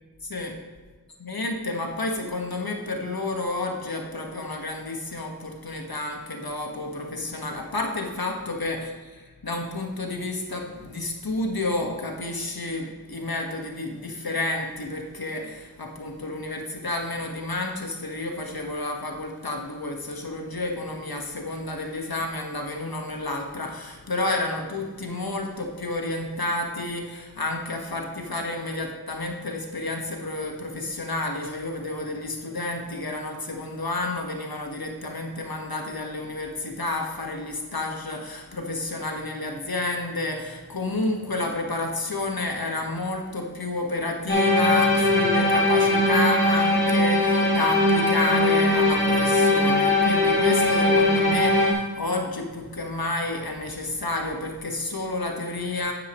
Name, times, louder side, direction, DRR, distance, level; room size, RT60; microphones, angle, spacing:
voice 1, 0.2-0.6 1.2-55.9, left 2 dB, 65° left, 2 dB, 1.6 m, -30 dB
sound 1, 44.3-51.7, left 2 dB, 30° left, 3.0 m, -20 dB
11.0 x 9.6 x 3.1 m, 1.4 s
wide cardioid pair, 65°, 38 cm